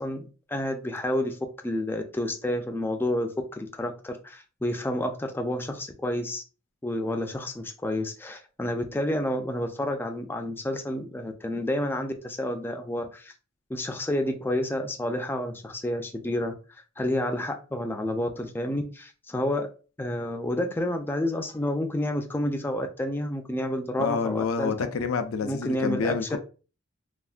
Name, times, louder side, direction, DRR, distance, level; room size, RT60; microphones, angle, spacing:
voice 1, 0.0-1.4 1.6-6.4 6.8-13.3 13.7-19.7 20.0-24.7 25.4-26.4, left 1 dB, 10° left, 0.3 m, -30 dB
voice 2, 24.0-26.4, left 5 dB, 90° left, 0.4 m, -28 dB
3.3 x 2.1 x 2.4 m
head